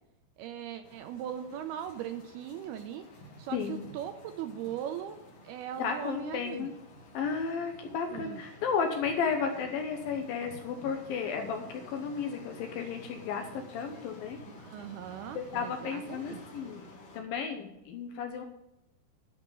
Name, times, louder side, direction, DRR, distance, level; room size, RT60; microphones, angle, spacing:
voice 1, 0.4-3.1 3.4-5.2 5.4-6.7 8.1-8.5 14.5-16.4, right 10 dB, 80° right, 8 dB, 2.4 m, -39 dB
sound 1, 0.8-17.2, left 1 dB, 55° left, 2.9 m, -51 dB
voice 2, 3.5-3.9 5.8-6.7 7.1-14.4 15.3-16.9 17.1-18.4, left 6 dB, 70° left, 5 dB, 2.4 m, -33 dB
10.5 x 6.0 x 7.5 m, 0.89 s
omnidirectional pair, 5.0 m